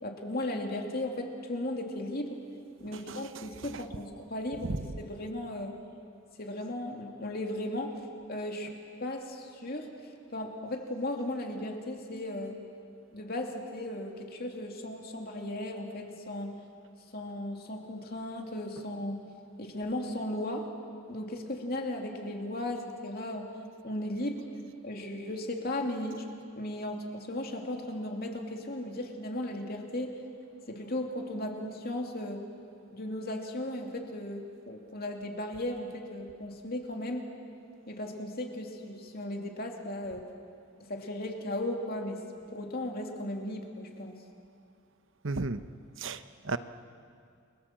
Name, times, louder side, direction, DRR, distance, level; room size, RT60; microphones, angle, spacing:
voice 1, 0.0-2.4 2.8-5.7 6.4-8.0 8.3-8.7 9.0-9.9 10.3-12.5 13.1-16.5 17.1-19.2 19.6-20.7 21.1-23.5 23.8-24.4 24.8-26.2 26.5-30.2 30.7-32.4 32.9-37.3 37.9-40.2 40.9-42.2 42.5-44.2, left 1 dB, 45° left, 2 dB, 2.7 m, -36 dB
voice 2, 2.8-3.8 4.6-4.9 45.2-45.6 46.0-46.6, right 3 dB, 60° right, 11 dB, 0.9 m, -35 dB
30.0 x 22.5 x 7.6 m, 2.3 s
head